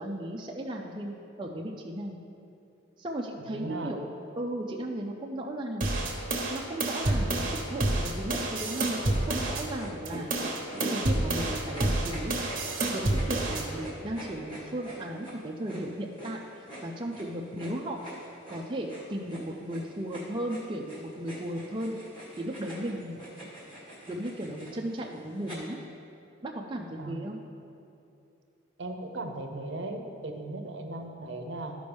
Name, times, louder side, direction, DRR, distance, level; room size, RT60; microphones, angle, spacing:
voice 1, 0.0-2.2 3.0-4.1 4.4-6.0 6.5-10.3 10.9-12.3 12.9-18.0 18.5-22.0 22.4-23.3 24.1-25.8 26.4-27.4, right 1 dB, 25° right, -1 dB, 0.5 m, -36 dB
voice 2, 3.4-3.9 27.0-27.2 28.8-31.8, right 2 dB, 60° right, 4 dB, 0.7 m, -37 dB
sound 1, 5.8-9.7 10.1-13.7, right 2 dB, 40° right, 1.1 m, -29 dB
sound 2, 9.0-25.5, right 1 dB, 25° left, 1.8 m, -44 dB
13.5 x 5.2 x 3.4 m, 2.6 s
head